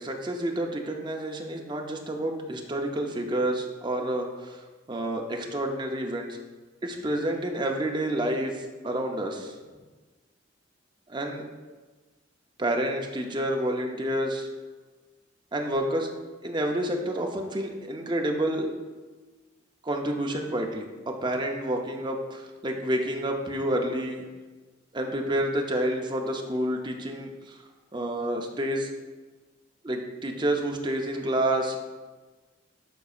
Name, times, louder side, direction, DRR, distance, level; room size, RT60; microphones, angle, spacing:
voice 1, 0.0-4.6 4.9-6.3 6.8-9.5 11.1-11.5 12.6-14.5 15.5-16.1 16.4-18.7 19.8-24.2 24.9-27.6 27.9-28.9 29.8-31.8, right 1 dB, 25° right, 2 dB, 0.6 m, -29 dB
11.5 x 4.0 x 2.4 m, 1.3 s
head